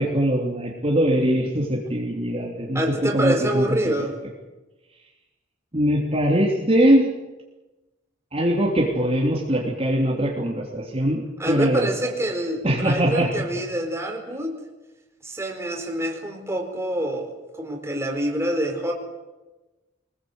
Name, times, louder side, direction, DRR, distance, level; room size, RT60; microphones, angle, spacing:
voice 1, 0.0-3.7 5.7-7.1 8.3-11.9 12.6-13.3, right 1 dB, 35° right, -2 dB, 3.2 m, -22 dB
voice 2, 2.7-4.1 11.4-14.6 15.2-18.9, right 1 dB, 15° right, 2 dB, 4.4 m, -26 dB
24.5 x 20.5 x 8.0 m, 1.1 s
head